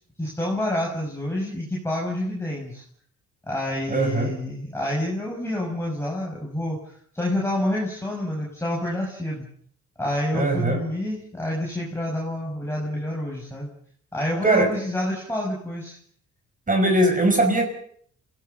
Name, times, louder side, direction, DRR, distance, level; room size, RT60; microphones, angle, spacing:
voice 1, 0.2-2.8 3.5-6.8 7.1-9.4 10.0-13.7 14.1-16.0, left 1 dB, 10° left, -3 dB, 6.1 m, -28 dB
voice 2, 3.9-4.3 10.3-10.8 14.4-14.7 16.7-17.7, right 1 dB, 25° right, 4 dB, 5.5 m, -20 dB
27.0 x 17.0 x 6.7 m, 0.62 s
cardioid pair, 90°, 30 cm